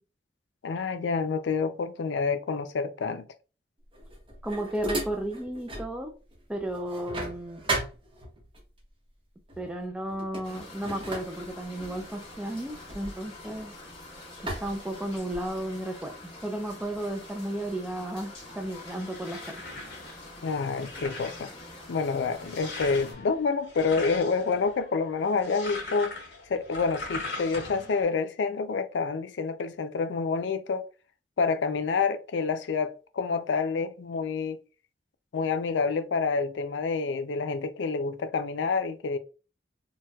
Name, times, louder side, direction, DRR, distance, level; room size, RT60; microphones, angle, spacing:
voice 1, 0.6-3.3 20.4-21.5 21.9-26.1 26.5-30.9 31.4-34.6 35.3-39.2, left 4 dB, 90° left, 0.4 m, -28 dB
sound 1, 3.9-5.9 6.3-8.6 9.5-9.7 10.1-13.9 14.5-15.6, right 2 dB, 30° right, 0.8 m, -36 dB
voice 2, 4.4-6.1 6.5-7.6 9.6-13.7 14.6-16.1 16.4-19.6, right 1 dB, 5° right, 0.3 m, -33 dB
sound 2, 10.4-23.1, left 2 dB, 30° left, 1.2 m, -46 dB
sound 3, 18.4-28.0, left 2 dB, 65° left, 1.3 m, -41 dB
4.0 x 2.2 x 2.2 m
head